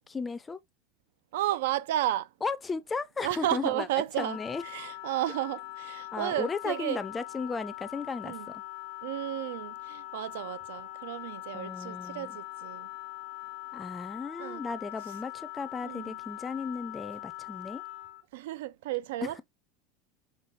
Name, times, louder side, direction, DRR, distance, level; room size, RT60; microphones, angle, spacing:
voice 1, 0.1-0.6 2.4-3.9 4.2-4.6 6.1-8.6 11.5-12.4 13.7-17.8, left 4 dB, 15° left, 0.4 m, -35 dB
voice 2, 1.3-2.3 3.2-4.4 4.6-7.0 8.2-8.5 9.0-12.9 14.4-14.6 15.8-16.2 18.3-19.4, right 14 dB, 80° right, 0.3 m, -33 dB
Wind instrument woodwind instrument, 4.1-18.2, left 18 dB, 85° left, 0.7 m, -42 dB
5.6 x 2.2 x 3.0 m
supercardioid pair, 160°, 0 cm